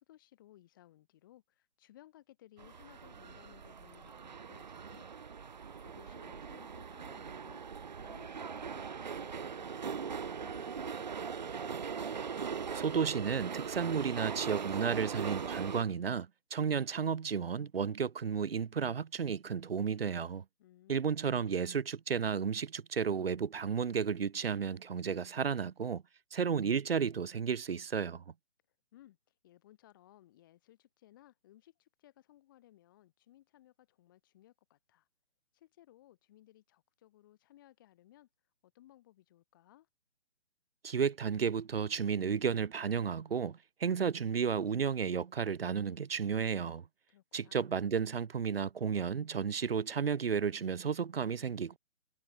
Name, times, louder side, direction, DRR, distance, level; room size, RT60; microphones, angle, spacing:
voice 1, 0.0-5.1 5.8-7.6 8.0-11.7 20.6-21.1 28.9-29.2 29.4-35.1 35.5-38.3 38.6-39.9 47.1-47.6, left 14 dB, 20° left, 2.7 m, -61 dB
sound 1, 2.6-15.8, right 6 dB, 40° right, 1.1 m, -40 dB
voice 2, 12.7-20.4 20.9-26.0 26.3-28.2 40.8-46.8 47.3-51.8, right 6 dB, 55° right, 1.0 m, -33 dB
hypercardioid pair, 175°, 35 cm